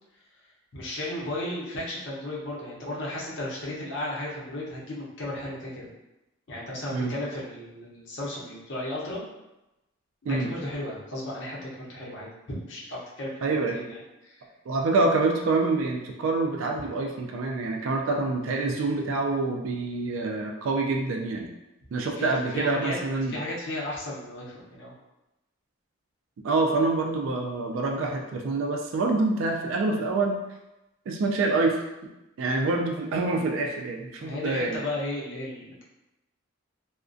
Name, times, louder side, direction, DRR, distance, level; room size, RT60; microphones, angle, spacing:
voice 1, 0.7-5.9 6.5-9.2 10.2-14.4 22.2-23.0 23.3-24.9 34.2-35.8, left 1 dB, 60° left, -5 dB, 0.7 m, -34 dB
voice 2, 13.4-13.8 14.7-21.5 21.9-23.4 26.4-30.4 31.1-31.8 32.4-34.8, right 3 dB, 80° right, 1 dB, 0.3 m, -26 dB
2.3 x 2.1 x 2.5 m, 0.96 s
head